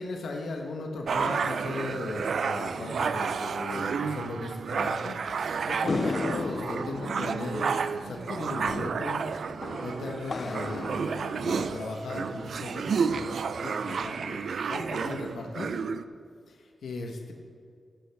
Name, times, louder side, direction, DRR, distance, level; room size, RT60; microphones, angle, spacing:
voice 1, 0.0-9.3 9.8-15.7 16.5-17.3, left 3 dB, 90° left, 2 dB, 1.0 m, -37 dB
sound 1, 1.1-16.0, right 5 dB, 75° right, 0.4 m, -31 dB
sound 2, 5.9-12.4, left 4 dB, 45° left, 0.3 m, -36 dB
15.5 x 8.5 x 3.4 m, 2.2 s
wide cardioid pair, 95°, 0 cm